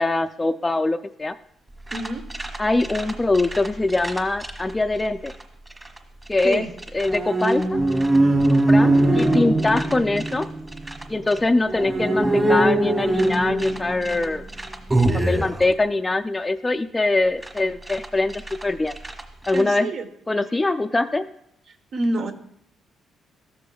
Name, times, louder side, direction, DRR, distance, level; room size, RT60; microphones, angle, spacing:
voice 1, 0.0-1.3 2.6-5.3 6.3-6.7 6.9-7.8 8.5-10.5 11.1-14.4 14.9-18.9 19.5-19.9 20.3-21.2, left 2 dB, 20° left, 5 dB, 0.3 m, -23 dB
sound 1, 1.9-4.6 5.3-5.4 5.7-6.0 6.3-6.5 6.8-11.4 11.7-15.6 17.4-17.6 17.9-18.0 18.3-18.6 18.9-19.6, right 1 dB, 20° right, 1.5 m, -22 dB
voice 2, 1.9-2.2 6.4-6.7 19.5-20.1 21.9-22.3, right 2 dB, 60° right, 6 dB, 0.9 m, -27 dB
14.0 x 6.8 x 2.3 m, 0.75 s
cardioid pair, 90°, 0 cm